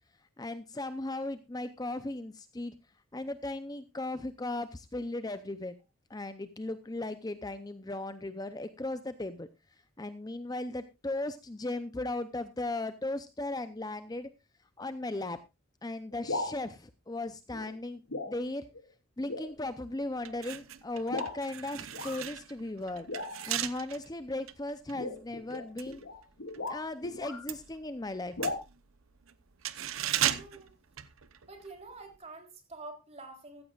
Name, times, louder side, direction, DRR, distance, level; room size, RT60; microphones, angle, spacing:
voice 1, 0.4-2.7 3.1-5.7 6.1-14.3 14.8-15.4 15.8-18.6 19.2-23.1 23.5-26.0 26.7-28.5, left 2 dB, 20° left, 11 dB, 0.6 m, -37 dB
sound 1, 16.1-16.6 17.5-17.8 18.1-18.4 18.7-18.8 19.3-19.5 20.2-20.4 21.1-21.4 21.9-22.2 23.1-23.6 24.9-27.5 28.4-28.6, left 2 dB, 80° left, 2.1 m, -37 dB
sound 2, 19.6-19.7 20.2-26.8 27.1-31.7 32.0-32.2, right 11 dB, 90° right, 0.9 m, -37 dB
voice 2, 30.2-30.7 31.5-33.6, right 3 dB, 30° right, 3 dB, 3.5 m, -47 dB
15.0 x 14.5 x 2.4 m, 0.25 s
head